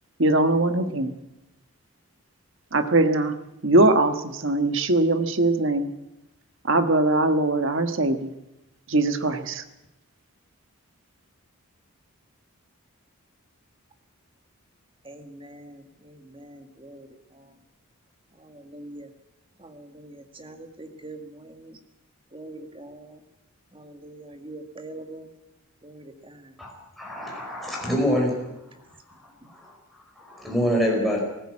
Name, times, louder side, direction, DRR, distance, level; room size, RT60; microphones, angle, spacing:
voice 1, 0.2-1.1 2.7-3.3 3.6-5.9 6.6-8.3 8.9-9.6, right 2 dB, 55° right, 8 dB, 1.5 m, -21 dB
voice 2, 15.0-17.5 18.4-19.1 19.6-21.8 22.3-23.2 23.7-25.3 25.8-26.5, right 2 dB, 25° right, 6 dB, 1.9 m, -43 dB
voice 3, 27.0-28.4 29.5-29.7 30.2-31.2, equal, ahead, -2 dB, 4.6 m, -25 dB
19.5 x 15.5 x 8.7 m, 0.90 s
head